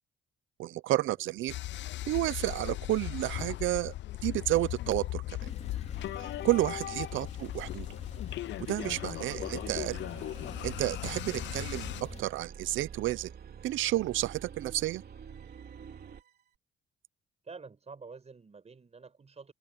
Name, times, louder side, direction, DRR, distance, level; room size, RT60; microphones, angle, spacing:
voice 1, 0.6-1.5 2.1-3.9 4.2-5.5 6.2-7.9 8.7-10.0 10.6-13.3 13.6-15.0, right 15 dB, 80° right, 0.7 m, -31 dB
sound 1, 1.5-12.0, left 15 dB, 65° left, 0.5 m, -38 dB
Male speech man speaking / Car / Idling, 5.4-12.2, left 4 dB, 35° left, 2.5 m, -45 dB
sound 2, 8.8-16.3, right 7 dB, 55° right, 3.4 m, -47 dB
voice 2, 17.4-19.5, right 4 dB, 35° right, 6.0 m, -48 dB
cardioid pair, 90°, 20 cm